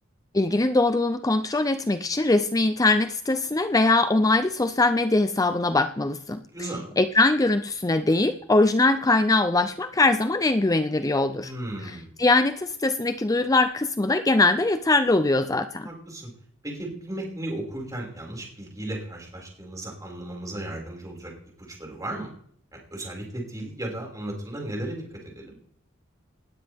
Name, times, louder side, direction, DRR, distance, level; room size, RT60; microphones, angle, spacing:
voice 1, 0.3-11.5 11.8-15.9, left 2 dB, 15° left, 10 dB, 0.5 m, -22 dB
voice 2, 6.5-6.9 11.4-12.1 15.8-16.3 16.6-21.3 21.7-22.3 22.9-25.5, right 1 dB, 15° right, -2 dB, 5.7 m, -35 dB
19.5 x 17.0 x 3.6 m, 0.63 s
head